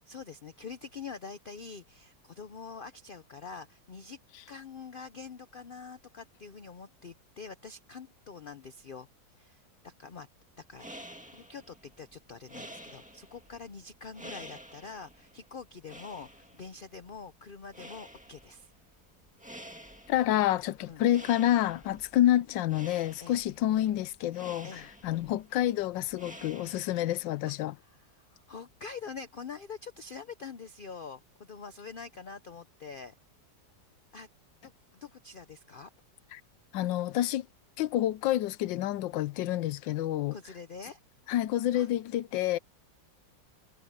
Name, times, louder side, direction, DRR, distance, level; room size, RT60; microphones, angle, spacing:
voice 1, 0.1-4.2 4.5-9.1 9.4-10.3 10.6-10.9 11.3-18.7 20.9-21.0 21.8-22.0 23.2-23.4 24.6-24.9 27.4-27.5 27.8-33.1 34.1-34.3 34.6-35.9 40.3-41.0 41.7-41.9, left 5 dB, 65° left, 0.5 m, -45 dB
sound 1, 10.6-27.2, equal, 5° right, 1.8 m, -50 dB
voice 2, 20.1-27.7 36.3-36.4 36.7-37.5 37.8-40.4 41.3-42.6, left 13 dB, 90° left, 1.3 m, -28 dB
omnidirectional pair, 2.0 m